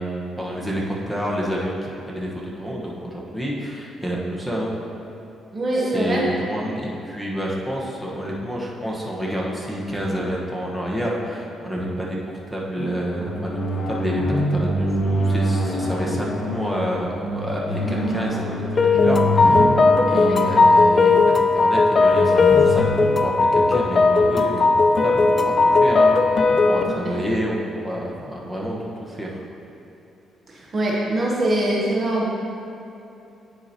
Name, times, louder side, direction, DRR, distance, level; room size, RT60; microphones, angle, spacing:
voice 1, 0.0-4.7 5.7-18.4 18.7-19.7 20.1-26.1 26.5-29.4, equal, 5° right, -4 dB, 1.2 m, -29 dB
voice 2, 5.5-6.2 20.1-20.4 26.8-27.1 30.5-32.3, right 1 dB, 40° right, -4 dB, 1.0 m, -23 dB
sound 1, 12.8-24.4, right 1 dB, 65° left, 1.0 m, -26 dB
sound 2, 18.8-26.8, left 3 dB, 40° left, 0.3 m, -17 dB
9.5 x 4.9 x 2.9 m, 2.8 s
cardioid pair, 90°, 0 cm